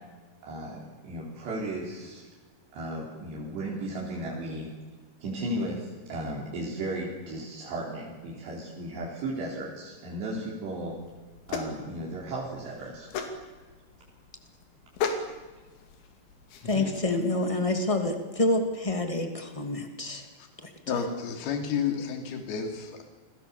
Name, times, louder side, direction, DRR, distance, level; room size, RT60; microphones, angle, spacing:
voice 1, 0.4-2.2 2.7-4.7 5.2-11.0 11.5-13.1 15.2-15.3, right 1 dB, 70° right, -3 dB, 6.2 m, -35 dB
sound 1, 10.9-17.0, left 5 dB, 90° left, 4.9 m, -36 dB
voice 2, 16.6-20.2 20.6-20.7, left 2 dB, 15° left, 5 dB, 1.3 m, -27 dB
voice 3, 20.9-23.0, left 6 dB, 65° left, 4 dB, 4.8 m, -31 dB
29.0 x 22.5 x 7.2 m, 1.3 s
omnidirectional pair, 5.1 m